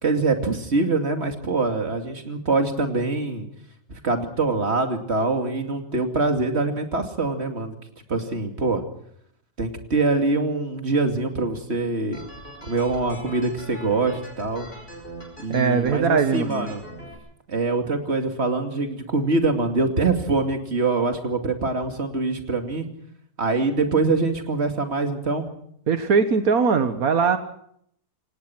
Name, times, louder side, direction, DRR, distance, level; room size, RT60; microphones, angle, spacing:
voice 1, 0.0-3.5 3.9-7.8 8.1-8.8 9.6-12.2 12.6-14.7 15.4-16.8 17.5-22.9 23.4-25.5, right 3 dB, 50° right, 5 dB, 2.8 m, -24 dB
sound 1, 12.1-17.1, equal, 40° left, 6.2 m, -42 dB
voice 2, 15.5-16.7 25.9-27.4, right 5 dB, 80° right, 9 dB, 1.7 m, -20 dB
28.0 x 18.0 x 6.0 m, 0.68 s
omnidirectional pair, 1.5 m